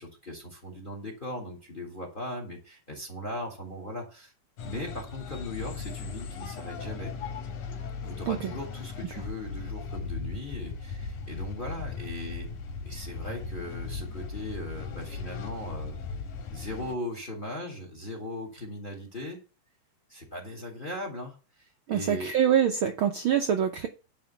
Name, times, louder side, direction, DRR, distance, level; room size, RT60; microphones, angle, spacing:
voice 1, 0.0-4.3 4.6-7.1 8.0-12.5 12.9-16.0 16.5-19.4 20.1-22.3, left 1 dB, 20° left, 1.9 m, -38 dB
sound 1, 4.6-17.0, left 5 dB, 90° left, 2.8 m, -38 dB
voice 2, 21.9-23.9, right 9 dB, 80° right, 1.1 m, -25 dB
10.5 x 4.3 x 6.9 m
omnidirectional pair, 3.4 m